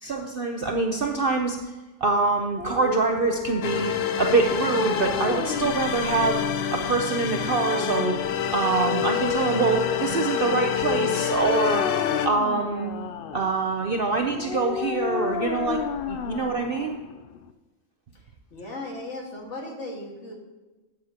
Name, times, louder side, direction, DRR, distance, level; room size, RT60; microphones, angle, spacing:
voice 1, 0.0-1.6 2.0-6.4 6.7-8.2 8.5-11.9 12.2-12.9 13.3-15.8 16.1-17.0, right 4 dB, 50° right, 2 dB, 0.7 m, -25 dB
sound 1, 2.5-17.5, left 8 dB, 80° left, 0.5 m, -31 dB
sound 2, 3.6-12.3, left 8 dB, 65° left, 0.8 m, -28 dB
voice 2, 18.5-20.3, left 2 dB, 50° left, -1 dB, 2.1 m, -36 dB
12.5 x 8.8 x 2.9 m, 1.2 s
omnidirectional pair, 1.6 m